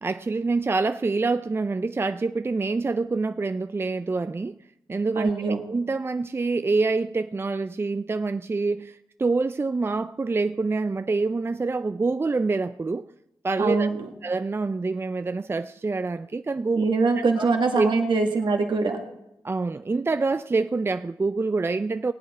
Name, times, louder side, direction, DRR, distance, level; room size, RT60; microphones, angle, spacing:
voice 1, 0.0-4.6 4.9-13.1 13.4-13.9 14.2-16.8 17.2-17.5 17.8-17.9 19.4-22.1, right 3 dB, 30° right, 0.4 m, -26 dB
voice 2, 5.2-5.6 13.6-14.1 16.8-19.0, right 4 dB, 70° right, 1.9 m, -23 dB
18.5 x 8.5 x 4.3 m
cardioid pair, 50°, 9 cm